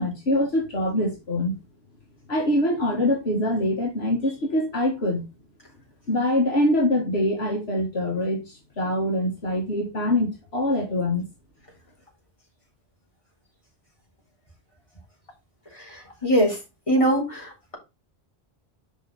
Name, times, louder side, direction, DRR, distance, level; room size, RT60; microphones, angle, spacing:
voice 1, 0.0-1.5 2.3-5.3 6.1-11.3, left 1 dB, 75° left, 1.9 m, -24 dB
voice 2, 15.9-16.6 16.9-17.7, equal, 30° left, 3.4 m, -22 dB
6.5 x 5.4 x 4.0 m
omnidirectional pair, 1.1 m